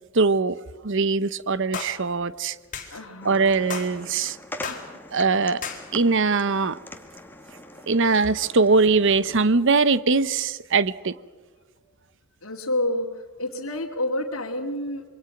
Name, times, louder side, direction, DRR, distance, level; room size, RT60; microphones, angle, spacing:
voice 1, 0.1-0.6 0.8-2.6 3.2-4.4 5.1-5.6 5.9-6.8 7.9-11.1, right 4 dB, 60° right, 16 dB, 0.9 m, -21 dB
sound 1, 1.7-2.0 2.7-2.9 3.7-3.9 4.6-4.9 5.6-5.8, left 6 dB, 40° left, 4.1 m, -32 dB
voice 2, 2.9-3.8 6.7-6.8 11.8-11.9 12.4-15.1, left 1 dB, 65° left, -4 dB, 2.5 m, -29 dB
sound 2, 3.2-9.4, left 1 dB, 10° left, 2.1 m, -43 dB
27.0 x 23.5 x 6.0 m, 1.4 s
head